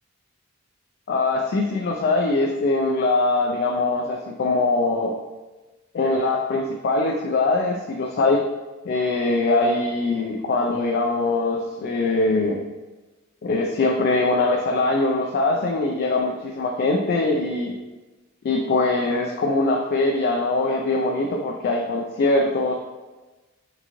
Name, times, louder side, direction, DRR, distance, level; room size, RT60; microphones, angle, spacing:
voice 1, 1.1-5.1 5.9-8.4 8.8-12.6 13.4-17.7 18.4-22.7, left 2 dB, 50° left, 0 dB, 0.3 m, -22 dB
3.7 x 2.4 x 2.9 m, 1.2 s
head